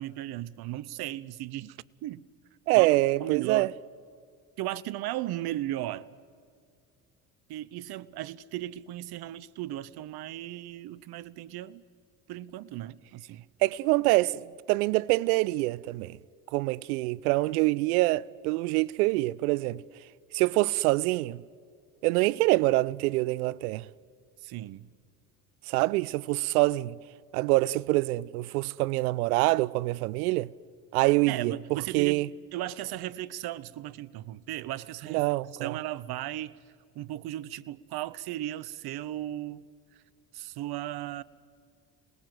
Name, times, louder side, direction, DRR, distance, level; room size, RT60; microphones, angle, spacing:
voice 1, 0.0-2.2 2.8-3.7 4.6-6.1 7.5-11.8 12.3-13.4 24.4-24.9 31.3-32.2 32.5-35.2 35.6-36.6 36.9-39.7 40.3-41.2, right 14 dB, 60° right, 0.9 m, -36 dB
voice 2, 2.7-3.7 13.6-14.4 14.7-16.2 16.5-19.8 20.3-21.4 22.0-23.8 25.7-27.0 27.3-30.5 30.9-32.3 35.1-35.8, right 20 dB, 85° right, 0.5 m, -25 dB
28.5 x 20.0 x 7.8 m
hypercardioid pair, 70°, 43 cm